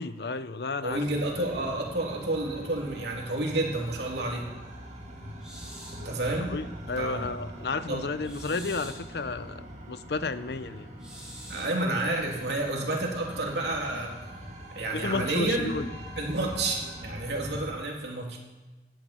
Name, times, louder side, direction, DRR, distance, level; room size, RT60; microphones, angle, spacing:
voice 1, 0.0-1.1 1.4-1.5 6.0-6.1 6.5-10.9 14.9-15.9, left 3 dB, 65° left, 13 dB, 0.7 m, -32 dB
voice 2, 0.8-4.4 6.0-6.5 7.0-7.3 7.9-8.1 11.5-14.1 14.7-15.7 16.2-18.4, right 2 dB, 75° right, -1 dB, 3.0 m, -30 dB
sound 1, 0.9-17.7, equal, 40° right, 2.0 m, -43 dB
sound 2, 5.4-6.1 8.2-9.1 11.0-11.8, equal, 5° right, 5.8 m, -46 dB
18.0 x 10.5 x 4.4 m, 1.2 s
head